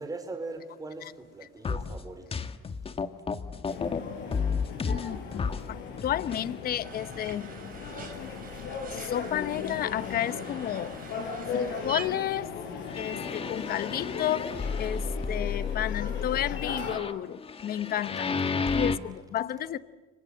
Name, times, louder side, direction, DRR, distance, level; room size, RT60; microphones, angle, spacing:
voice 1, 0.0-2.5 18.6-18.8, right 3 dB, 20° right, 6 dB, 4.2 m, -40 dB
sound 1, 1.6-4.0 4.3-5.7 6.0-6.4 7.0-7.1 7.7-7.8 8.4-8.5 12.8-19.0, left 5 dB, 30° left, 1.7 m, -32 dB
sound 2, 3.7-17.0, left 6 dB, 70° left, 5.9 m, -38 dB
voice 2, 4.8-7.5 7.9-8.1 8.9-10.9 11.5-12.5 13.0-19.8, left 11 dB, 50° left, 15 dB, 1.0 m, -32 dB
sound 3, 6.8-12.1, right 7 dB, 45° right, 5.5 m, -45 dB
30.0 x 24.5 x 8.0 m, 1.3 s
cardioid pair, 105°, 20 cm